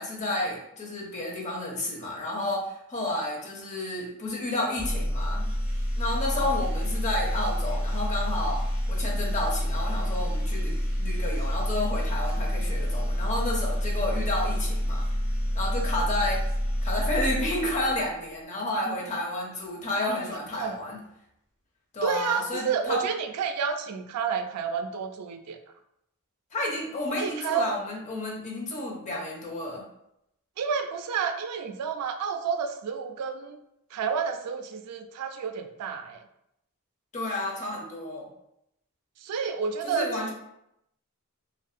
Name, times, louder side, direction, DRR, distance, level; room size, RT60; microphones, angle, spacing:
voice 1, 0.0-5.5 6.0-8.6 8.9-15.1 15.5-16.4 16.8-21.0 21.9-23.0 26.5-29.8 37.1-38.3 39.8-40.3, left 1 dB, 35° left, -1 dB, 0.6 m, -31 dB
sound 1, 4.8-18.1, equal, 75° left, 0.8 m, -28 dB
voice 2, 22.0-25.6 27.2-27.7 30.6-33.6 33.9-36.2 39.2-40.1, right 6 dB, 90° right, 7 dB, 0.3 m, -30 dB
2.6 x 2.3 x 2.3 m, 0.79 s
head